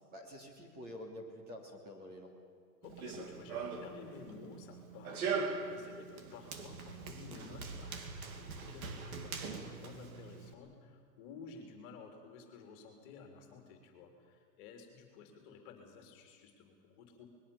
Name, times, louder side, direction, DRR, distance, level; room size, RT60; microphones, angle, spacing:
voice 1, 0.1-2.3, left 1 dB, 20° right, 1 dB, 3.0 m, -48 dB
voice 2, 2.8-17.3, left 5 dB, 30° left, 4 dB, 3.4 m, -53 dB
Run, 2.8-10.5, right 5 dB, 55° right, 2.9 m, -41 dB
25.0 x 21.0 x 7.1 m, 2.3 s
hypercardioid pair, 155°, 50 cm